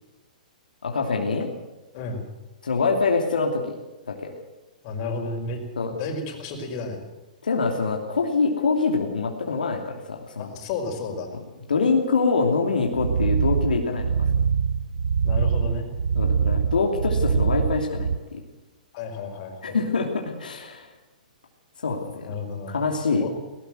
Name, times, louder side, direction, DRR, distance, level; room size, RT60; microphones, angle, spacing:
voice 1, 0.8-1.5 2.6-3.7 4.1-4.3 5.8-5.9 7.4-10.5 11.7-14.3 16.2-18.4 19.6-20.9 21.8-22.3 22.7-23.2, left 4 dB, 90° left, 1 dB, 2.9 m, -25 dB
voice 2, 1.9-2.3 4.8-5.6 6.0-7.0 10.4-11.3 15.2-15.9 18.9-19.8 22.3-22.8 23.2-23.3, left 3 dB, 45° left, 3 dB, 5.3 m, -32 dB
sound 1, 12.9-18.2, right 6 dB, 80° right, 0.9 m, -23 dB
18.5 x 18.5 x 7.9 m, 1.1 s
hypercardioid pair, 130°, 5 cm